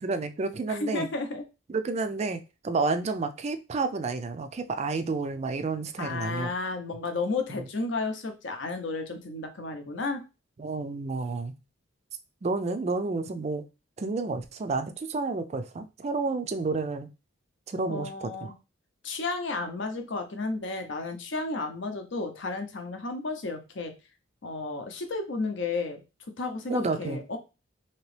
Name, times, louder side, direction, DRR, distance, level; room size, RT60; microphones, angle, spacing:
voice 1, 0.0-1.1 1.7-6.7 7.5-7.6 10.6-11.5 12.4-13.6 14.0-17.1 17.7-18.5 26.7-27.2, right 3 dB, 35° right, 9 dB, 0.3 m, -30 dB
voice 2, 0.7-1.4 6.0-10.2 17.9-18.5 19.0-23.9 24.4-26.0 26.4-27.4, left 3 dB, 60° left, 6 dB, 0.6 m, -32 dB
2.9 x 2.9 x 3.2 m, 0.28 s
head